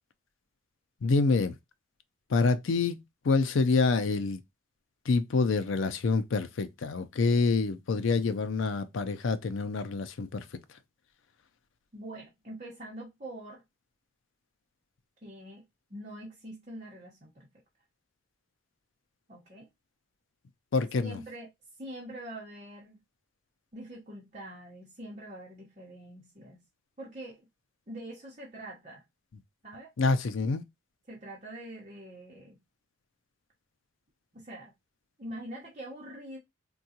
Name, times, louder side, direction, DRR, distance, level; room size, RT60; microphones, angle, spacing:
voice 1, 1.0-1.5 2.3-4.4 5.1-10.4 20.7-21.2 30.0-30.6, left 4 dB, 75° left, 0.5 m, -27 dB
voice 2, 11.9-13.6 15.2-17.5 19.3-19.7 21.0-21.5 21.8-23.0 23.7-26.6 27.0-27.4 27.9-29.0 29.6-29.9 31.1-32.6 34.3-34.7 35.2-36.4, right 1 dB, 35° right, 0.9 m, -44 dB
3.6 x 2.3 x 2.7 m
head